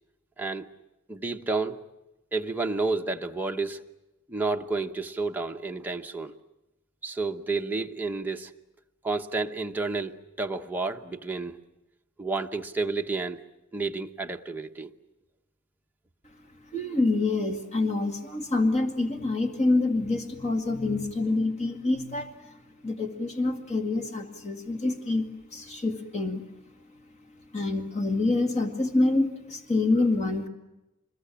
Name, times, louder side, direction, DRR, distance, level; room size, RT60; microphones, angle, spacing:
voice 1, 1.1-1.8 2.3-3.8 4.3-6.3 7.0-8.5 9.0-11.6 12.2-13.4 13.7-14.9, right 3 dB, 10° right, 3 dB, 1.0 m, -30 dB
voice 2, 16.7-26.5 27.5-30.5, left 2 dB, 30° left, 5 dB, 2.0 m, -27 dB
25.5 x 22.0 x 8.7 m, 0.95 s
head